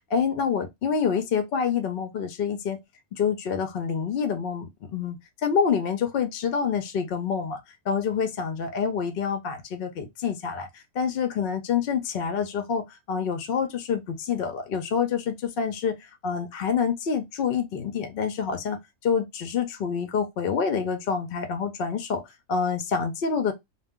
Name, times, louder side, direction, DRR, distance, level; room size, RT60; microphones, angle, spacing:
voice 1, 0.1-2.8 3.1-7.6 7.9-22.2 22.5-23.5, left 6 dB, 60° left, 0.6 m, -27 dB
2.2 x 2.1 x 3.5 m
omnidirectional pair, 1.3 m